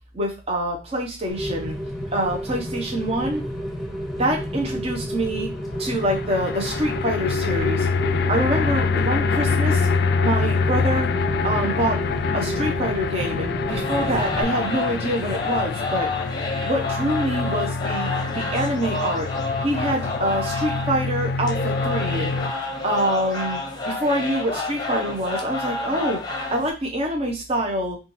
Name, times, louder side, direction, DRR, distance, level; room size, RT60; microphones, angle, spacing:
voice 1, 0.1-1.8 2.1-3.4 4.1-5.5 5.8-7.9 8.3-9.9 10.2-11.1 11.4-12.0 12.3-16.1 16.6-18.1 18.3-19.3 19.6-22.3 22.8-23.6 23.8-28.0, right 1 dB, 35° right, 1 dB, 0.8 m, -25 dB
Rain, 1.3-14.4, equal, ahead, 1.0 m, -30 dB
sound 1, 5.7-22.5, left 5 dB, 55° left, 0.3 m, -26 dB
sound 2, 13.7-26.7, left 3 dB, 20° left, 0.8 m, -29 dB
5.6 x 2.4 x 3.1 m, 0.31 s
head